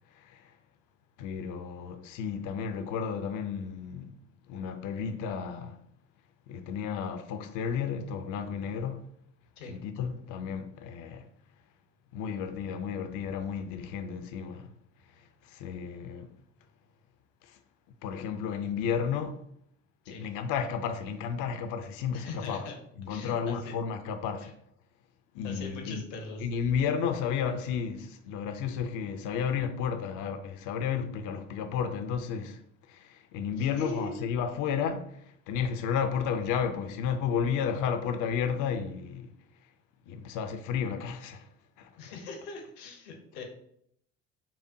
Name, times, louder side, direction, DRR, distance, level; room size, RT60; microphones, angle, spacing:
voice 1, 0.1-0.5 1.2-4.2 4.5-5.8 6.5-9.1 9.7-11.3 12.1-14.7 15.2-16.4 17.4-17.6 18.0-19.5 20.1-22.7 23.0-24.5 25.3-26.0 26.4-32.6 32.9-39.4 40.1-41.5 41.8-41.9, left 7 dB, 55° left, 0.5 m, -32 dB
voice 2, 22.1-22.8 23.1-23.8 24.4-24.5 25.4-26.4 33.6-34.1 42.0-43.5, left 3 dB, 75° left, 0.8 m, -41 dB
5.5 x 2.1 x 2.5 m
hypercardioid pair, 55°, 38 cm